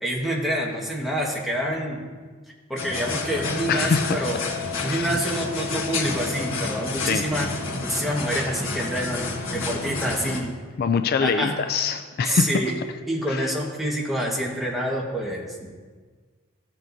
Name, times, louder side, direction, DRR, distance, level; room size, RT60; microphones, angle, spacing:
voice 1, 0.0-2.0 2.7-4.4 4.8-7.5 7.8-10.5 11.2-11.5 12.2-12.7 13.1-15.5, right 1 dB, ahead, -3 dB, 1.5 m, -27 dB
sound 1, 2.8-10.4, left 3 dB, 85° left, 1.5 m, -30 dB
voice 2, 3.7-4.3 4.9-5.1 7.0-7.2 10.8-12.5 13.3-13.4, left 6 dB, 50° left, 8 dB, 0.3 m, -24 dB
15.0 x 7.5 x 2.7 m, 1.5 s
head